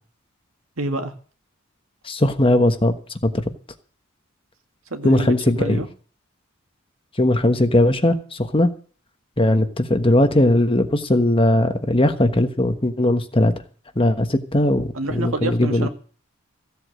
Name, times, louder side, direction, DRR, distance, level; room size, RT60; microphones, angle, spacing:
voice 1, 0.8-1.1 4.9-5.9 14.9-15.9, right 2 dB, 75° right, 6 dB, 2.0 m, -28 dB
voice 2, 2.1-2.9 5.0-5.8 7.2-8.7 9.4-13.5 14.0-15.9, left 1 dB, 25° left, 8 dB, 1.3 m, -18 dB
15.5 x 8.2 x 7.7 m, 0.42 s
head